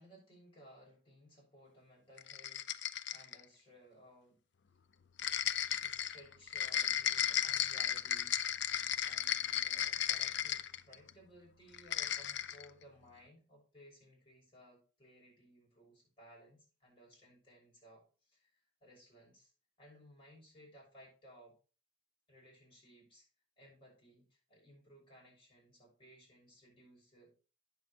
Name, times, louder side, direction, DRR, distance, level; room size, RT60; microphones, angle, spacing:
voice 1, 0.0-4.4 5.8-18.5 18.8-19.5 19.8-21.6 22.3-23.3 23.6-27.3, equal, 30° left, -4 dB, 6.1 m, -60 dB
sound 1, 2.2-3.4 5.2-11.1 11.7-12.6, left 10 dB, 70° left, 0.5 m, -35 dB
9.4 x 6.8 x 4.2 m, 0.34 s
head